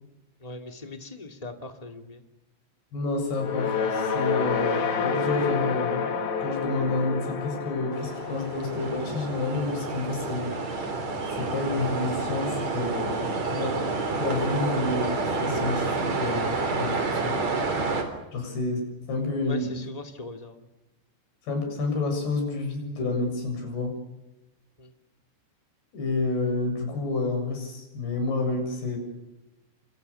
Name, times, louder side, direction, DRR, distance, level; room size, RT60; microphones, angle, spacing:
voice 1, 0.4-2.2 19.4-20.7 24.8-24.9, left 2 dB, 15° left, 5 dB, 1.4 m, -40 dB
voice 2, 2.9-6.1 6.4-10.8 11.4-13.2 13.5-13.8 14.1-17.7 18.3-19.7 21.4-23.9 25.9-29.0, left 3 dB, 70° left, 4 dB, 9.4 m, -29 dB
sound 1, 3.3-11.7, left 5 dB, 85° left, 5.1 m, -30 dB
sound 2, 7.9-18.0, right 3 dB, 40° right, 4.7 m, -29 dB
28.5 x 26.5 x 7.0 m, 0.95 s
omnidirectional pair, 4.9 m